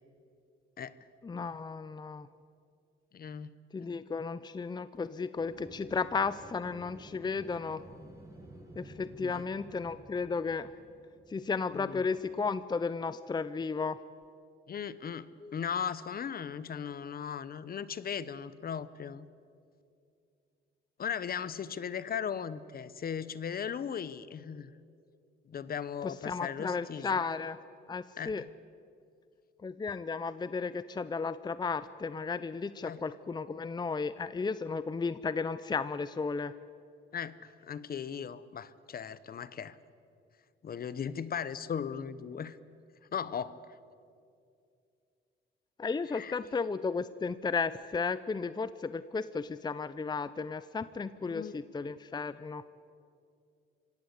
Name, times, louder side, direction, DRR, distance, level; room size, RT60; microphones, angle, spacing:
voice 1, 1.2-2.3 3.7-7.8 8.8-10.7 11.3-14.0 15.4-15.5 26.0-27.6 27.9-28.4 29.6-36.5 45.8-52.6, left 4 dB, 20° left, 15 dB, 0.6 m, -34 dB
voice 2, 3.1-3.5 9.2-9.4 11.7-12.1 14.7-19.3 21.0-24.7 25.5-27.2 28.2-28.5 32.8-33.0 37.1-39.8 40.6-42.6 43.1-43.6 46.1-46.4 51.2-51.5, left 7 dB, 50° left, 16 dB, 1.0 m, -37 dB
sound 1, 5.4-12.5, right 1 dB, 15° right, 7.7 m, -52 dB
26.0 x 17.0 x 8.3 m, 2.4 s
cardioid pair, 90°, 20 cm